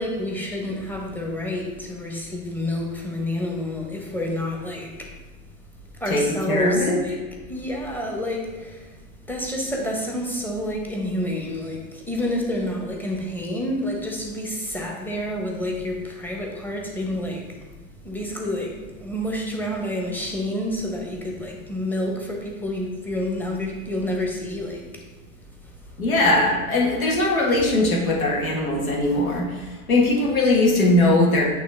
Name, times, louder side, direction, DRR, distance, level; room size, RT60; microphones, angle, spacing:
voice 1, 0.0-5.1 6.0-7.2 7.5-8.8 9.3-17.4 18.0-24.9, left 1 dB, 5° left, 0 dB, 1.1 m, -28 dB
voice 2, 6.1-7.0 26.0-31.4, left 2 dB, 75° left, -2 dB, 1.7 m, -20 dB
8.6 x 3.3 x 3.5 m, 1.3 s
figure-of-eight pair, 80°, 43 cm